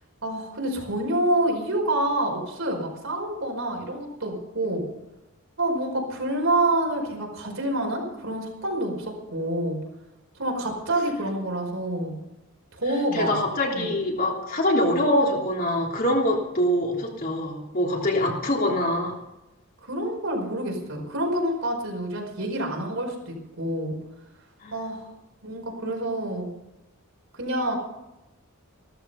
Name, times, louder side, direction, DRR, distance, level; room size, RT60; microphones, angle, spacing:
voice 1, 0.2-4.8 5.6-9.8 10.4-12.2 12.7-13.3 13.7-13.9 19.9-23.9 24.7-25.1 25.4-26.5 27.3-27.8, right 1 dB, 65° right, 1 dB, 4.9 m, -27 dB
voice 2, 13.1-19.1 24.6-24.7 25.8-25.9, left 1 dB, 40° left, 0 dB, 3.2 m, -24 dB
16.0 x 13.5 x 5.6 m, 0.98 s
head